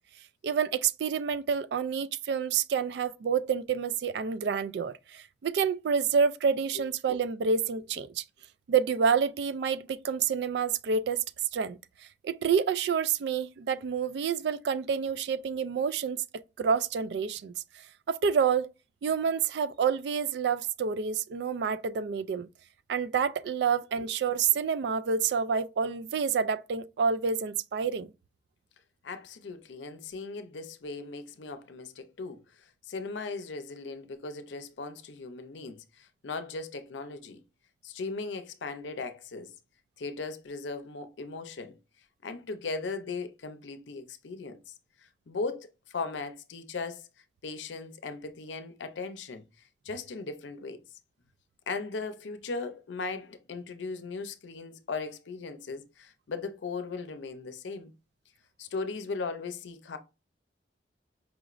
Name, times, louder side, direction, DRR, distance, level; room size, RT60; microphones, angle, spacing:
voice 1, 0.4-8.2 8.7-11.2 11.5-11.8 12.2-16.2 16.6-18.7 19.0-22.5 22.9-28.1, right 6 dB, 65° right, 0.3 m, -28 dB
voice 2, 29.0-37.4 37.8-39.5 40.0-41.8 42.2-47.1 47.4-49.4 49.8-50.8 51.7-57.9 58.6-60.0, left 4 dB, 85° left, 0.6 m, -38 dB
5.0 x 2.5 x 3.0 m
head